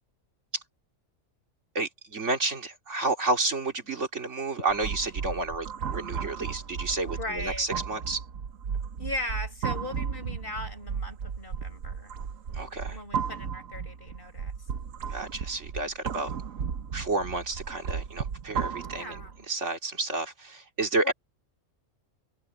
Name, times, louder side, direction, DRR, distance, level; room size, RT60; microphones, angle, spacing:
voice 1, 1.7-8.2 12.5-13.0 15.1-16.3 16.9-19.1 19.5-21.1, right 3 dB, 65° right, 2.9 m, -30 dB
sound 1, 4.7-19.4, right 6 dB, 85° right, 1.4 m, -35 dB
voice 2, 7.0-7.7 9.0-12.2 12.9-14.5 18.8-19.5 21.0-21.1, left 2 dB, 40° left, 5.2 m, -38 dB
omnidirectional pair, 1.3 m